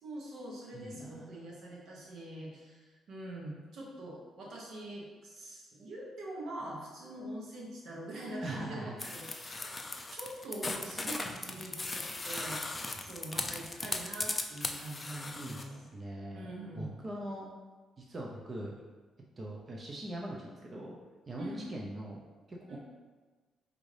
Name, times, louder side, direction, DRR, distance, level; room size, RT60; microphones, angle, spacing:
voice 1, 0.0-9.7 10.1-15.8 16.3-16.9 21.4-21.7 22.7-22.8, right 1 dB, 70° right, -2 dB, 1.0 m, -44 dB
voice 2, 0.7-1.4 8.4-9.1 15.3-17.5 18.0-18.8 19.4-21.0 21.3-22.2 22.5-22.8, right 1 dB, 35° right, -2 dB, 0.6 m, -42 dB
sound 1, 9.0-15.6, left 2 dB, 25° left, 0.4 m, -38 dB
4.8 x 2.6 x 3.3 m, 1.3 s
cardioid pair, 90°, 0 cm